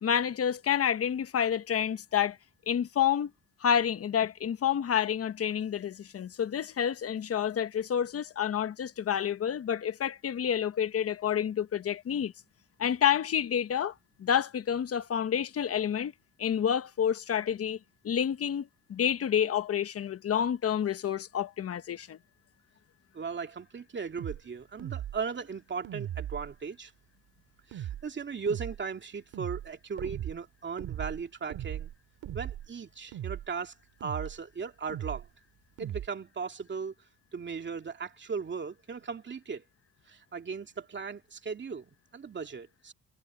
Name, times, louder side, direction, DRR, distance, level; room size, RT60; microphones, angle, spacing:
voice 1, 0.0-2.4 2.7-3.3 3.6-12.3 12.8-13.9 14.2-16.1 16.4-17.8 18.0-22.2, left 9 dB, 50° left, 1.2 m, -29 dB
voice 2, 23.1-26.9 27.7-31.9 32.3-33.7 34.0-35.3 35.8-36.9 37.3-39.6 40.1-42.9, right 5 dB, 40° right, 2.4 m, -37 dB
sound 1, 24.2-24.4 24.8-25.2 25.8-26.5 27.7-28.0 28.5-28.8 29.3-29.7 30.0-30.4 30.8-31.2 31.5-31.9 32.2-32.7 33.1-33.5 34.0-34.4 34.9-35.3 35.8-36.1, right 11 dB, 75° right, 3.5 m, -37 dB
cardioid pair, 90°, 30 cm